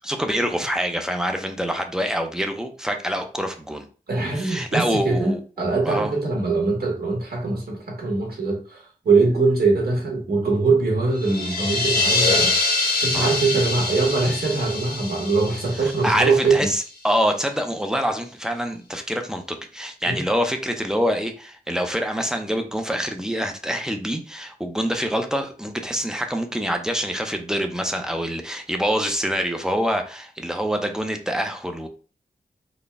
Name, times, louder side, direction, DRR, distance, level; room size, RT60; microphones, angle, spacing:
voice 1, 0.0-3.8 4.3-5.4 5.9-6.1 13.1-13.3 15.7-31.9, equal, 5° right, 0.6 m, -25 dB
voice 2, 4.1-12.6 13.0-16.6 20.1-20.2, right 3 dB, 75° right, 1.5 m, -22 dB
sound 1, 11.2-16.8, left 3 dB, 85° left, 1.2 m, -24 dB
4.1 x 2.2 x 3.4 m
wide cardioid pair, 95°, 16 cm